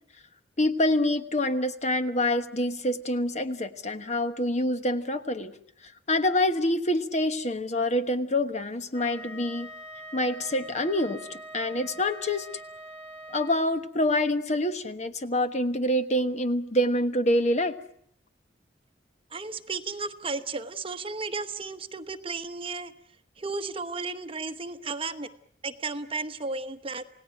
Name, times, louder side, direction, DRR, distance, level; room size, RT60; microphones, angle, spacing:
voice 1, 0.6-5.5 5.8-9.7 10.1-12.5 13.3-17.8, left 1 dB, 40° left, 9 dB, 1.2 m, -26 dB
Wind instrument woodwind instrument, 8.9-13.7, right 1 dB, 85° left, 3.5 m, -43 dB
voice 2, 19.3-22.9 23.4-25.3 25.6-27.0, right 3 dB, 30° right, 9 dB, 1.0 m, -34 dB
28.0 x 18.0 x 9.1 m, 0.69 s
head